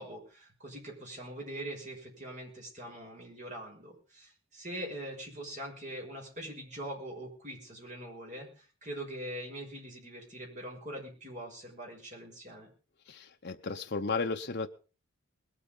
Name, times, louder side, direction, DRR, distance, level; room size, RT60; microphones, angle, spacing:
voice 1, 0.0-12.7, right 1 dB, 35° right, 0 dB, 5.9 m, -43 dB
voice 2, 13.1-14.7, left 4 dB, 50° left, 5 dB, 0.8 m, -34 dB
21.0 x 8.6 x 5.5 m, 0.37 s
head